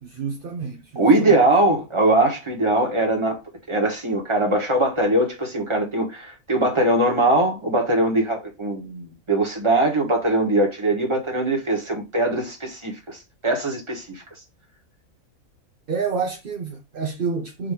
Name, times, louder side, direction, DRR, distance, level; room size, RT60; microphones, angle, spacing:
voice 1, 0.0-1.4 15.9-17.7, right 5 dB, 50° right, 0.7 m, -29 dB
voice 2, 0.9-3.4 3.7-13.2 13.4-14.2, right 2 dB, 20° right, 1.5 m, -21 dB
5.3 x 3.0 x 3.3 m
omnidirectional pair, 1.5 m